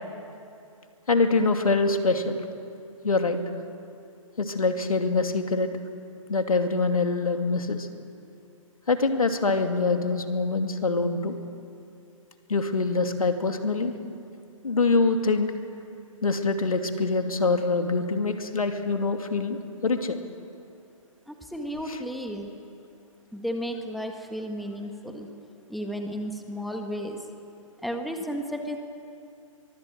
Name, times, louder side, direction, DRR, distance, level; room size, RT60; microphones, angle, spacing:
voice 1, 1.1-2.4 3.0-3.4 4.4-5.7 6.3-7.9 8.9-11.3 12.5-13.9 14.6-15.5 16.2-20.2 21.9-22.0, left 3 dB, 90° left, 6 dB, 2.6 m, -24 dB
voice 2, 21.3-22.5 23.3-25.3 25.7-27.3 27.8-28.8, equal, ahead, 3 dB, 1.8 m, -33 dB
23.5 x 22.5 x 7.8 m, 2.6 s
hypercardioid pair, 135°, 18 cm